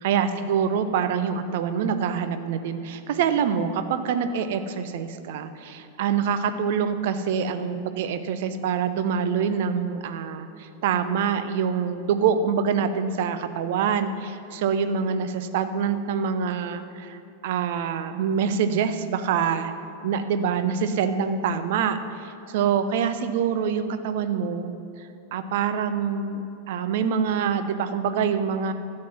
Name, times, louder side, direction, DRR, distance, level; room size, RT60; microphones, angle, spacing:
voice 1, 0.0-19.7 20.0-24.7 25.3-28.7, right 7 dB, 50° right, 10 dB, 0.7 m, -25 dB
12.5 x 7.5 x 6.0 m, 2.8 s
figure-of-eight pair, 90°, 0 cm